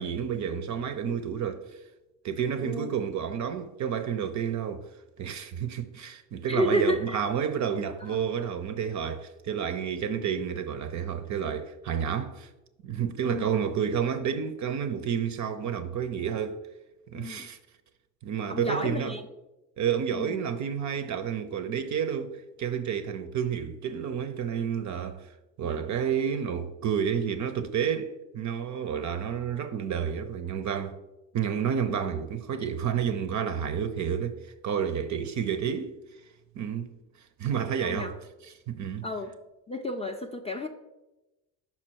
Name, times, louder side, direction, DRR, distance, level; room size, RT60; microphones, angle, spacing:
voice 1, 0.0-1.7 2.2-4.9 5.2-12.5 12.8-16.6 17.1-17.6 18.2-19.2 19.8-25.3 25.6-31.0 31.3-34.4 34.6-35.9 36.6-36.9 37.4-38.2 38.4-39.1, right 8 dB, 40° right, 0.5 m, -30 dB
voice 2, 2.6-2.9 6.5-7.2 8.0-8.2 13.2-13.5 17.1-17.5 18.5-19.2 20.1-20.4 25.6-26.0 31.9-32.0 37.8-38.1 39.0-39.3 39.7-40.7, equal, 15° left, 0.5 m, -31 dB
5.8 x 4.4 x 4.5 m
hypercardioid pair, 65°, 47 cm